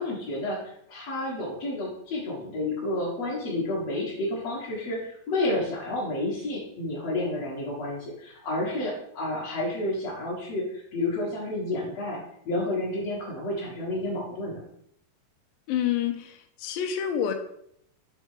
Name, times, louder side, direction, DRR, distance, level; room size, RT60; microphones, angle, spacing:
voice 1, 0.0-12.2 12.4-14.6, left 2 dB, 65° left, -8 dB, 1.7 m, -30 dB
voice 2, 15.7-16.3 16.6-17.3, left 9 dB, 80° left, 5 dB, 2.0 m, -27 dB
6.5 x 3.3 x 4.8 m, 0.71 s
omnidirectional pair, 4.6 m